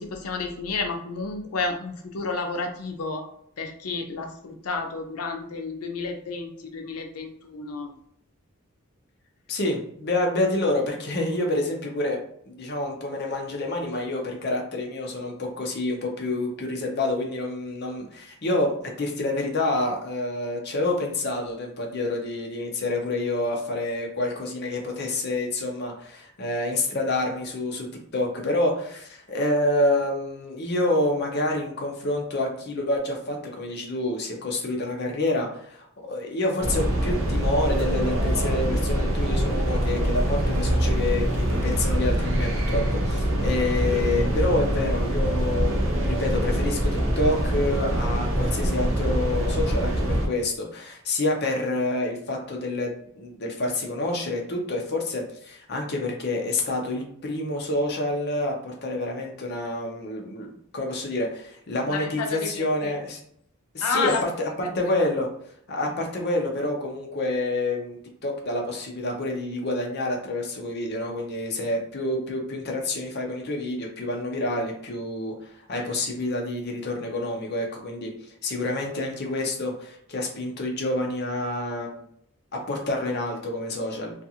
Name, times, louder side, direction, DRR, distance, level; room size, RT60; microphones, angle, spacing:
voice 1, 0.0-3.2 3.6-7.9 61.9-62.9 63.8-64.3 64.6-65.0, left 4 dB, 90° left, 4 dB, 0.5 m, -31 dB
voice 2, 9.5-12.2 12.5-27.9 28.1-63.2 63.7-65.3 65.7-68.0 68.2-78.1 78.4-82.0 82.5-84.1, left 2 dB, 50° left, 1 dB, 0.6 m, -28 dB
sound 1, 36.6-50.3, right 1 dB, 60° right, 0.7 m, -24 dB
2.4 x 2.4 x 2.8 m, 0.67 s
head